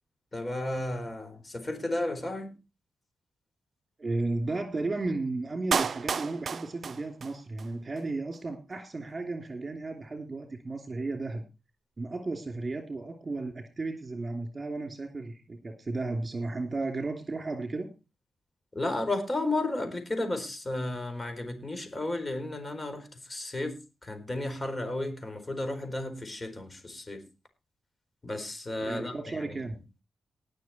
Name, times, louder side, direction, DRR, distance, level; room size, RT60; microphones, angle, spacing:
voice 1, 0.3-2.6 18.7-27.2 28.2-29.5, left 2 dB, 30° left, 8 dB, 4.3 m, -33 dB
voice 2, 4.0-11.4 12.0-17.9 28.8-29.8, right 3 dB, 35° right, 4 dB, 2.8 m, -34 dB
Clapping, 5.7-7.7 8.0-8.1, right 6 dB, 60° right, 0.5 m, -31 dB
19.5 x 6.5 x 4.3 m, 0.29 s
cardioid pair, 65°, 0 cm